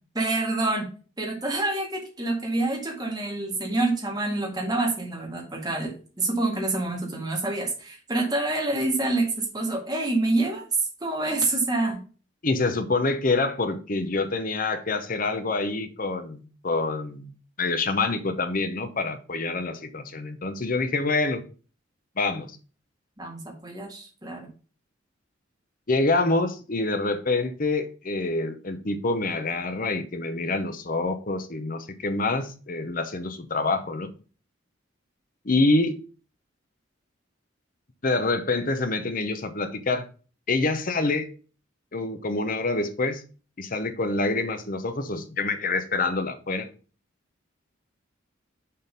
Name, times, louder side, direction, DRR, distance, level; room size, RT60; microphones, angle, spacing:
voice 1, 0.1-0.9 1.2-12.0 23.2-24.5, right 2 dB, 20° right, 0 dB, 1.8 m, -27 dB
voice 2, 12.4-17.3 17.6-21.4 22.2-22.5 25.9-34.1 35.4-36.0 38.0-40.0 40.5-41.3 41.9-43.2 43.6-46.7, left 3 dB, 45° left, 9 dB, 0.8 m, -26 dB
6.6 x 3.8 x 5.2 m, 0.36 s
head